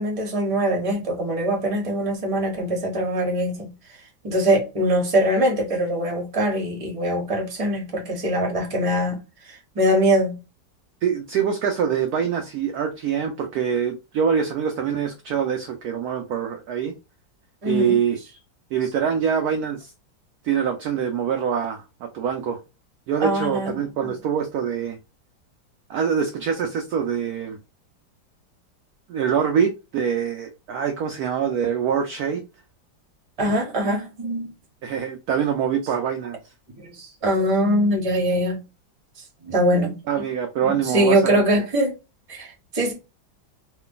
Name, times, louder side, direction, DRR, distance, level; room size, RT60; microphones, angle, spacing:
voice 1, 0.0-3.7 4.2-9.2 9.7-10.4 17.6-17.9 23.2-23.8 33.4-34.5 36.8-38.6 39.4-40.0 40.6-41.9 42.3-42.9, right 1 dB, 25° right, 0.9 m, -22 dB
voice 2, 11.0-17.0 17.7-18.2 18.7-19.9 20.4-21.8 22.1-22.6 23.1-25.0 25.9-27.6 29.1-32.4 34.8-36.5 40.1-41.6, right 7 dB, 75° right, 0.9 m, -24 dB
3.2 x 2.3 x 3.7 m
omnidirectional pair, 2.1 m